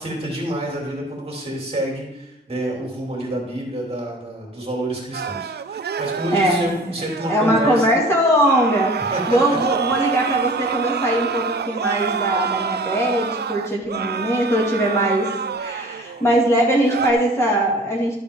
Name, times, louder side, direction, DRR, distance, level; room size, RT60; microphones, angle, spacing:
voice 1, 0.0-7.9 9.1-9.2, right 1 dB, 35° right, -2 dB, 3.0 m, -28 dB
sound 1, 5.1-7.9 8.4-16.2 16.7-17.1, right 8 dB, 80° right, 0.5 m, -27 dB
voice 2, 6.3-6.8 7.3-18.1, right 1 dB, 15° left, -3 dB, 2.0 m, -20 dB
12.0 x 7.5 x 3.6 m, 0.86 s
wide cardioid pair, 140°, 17 cm